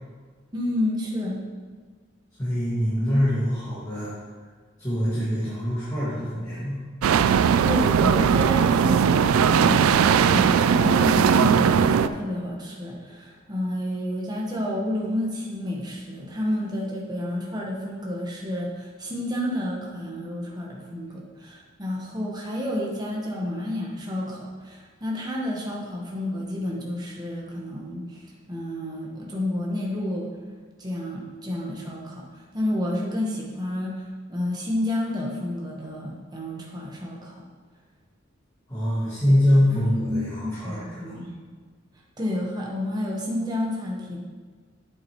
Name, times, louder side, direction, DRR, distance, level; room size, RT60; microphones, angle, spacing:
voice 1, 0.5-1.4 7.6-30.3 30.8-33.9 34.3-37.4 39.6-39.8 40.1-41.3 42.2-44.2, left 1 dB, 20° right, -3 dB, 1.2 m, -30 dB
voice 2, 2.4-4.1 4.8-6.8 38.7-41.1, equal, 15° left, -11 dB, 1.9 m, -24 dB
sound 1, 7.0-12.1, right 7 dB, 90° right, 0.3 m, -19 dB
8.4 x 7.6 x 3.1 m, 1.5 s
head